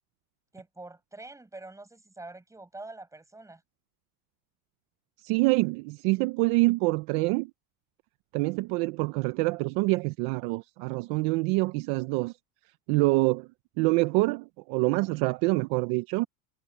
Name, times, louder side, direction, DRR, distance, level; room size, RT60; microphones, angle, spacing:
voice 1, 0.5-3.6, right 2 dB, 5° right, 5.7 m, -45 dB
voice 2, 5.2-7.5 8.3-12.3 12.9-13.5 13.8-16.3, right 24 dB, 55° right, 0.7 m, -26 dB
supercardioid pair, 150°, 45 cm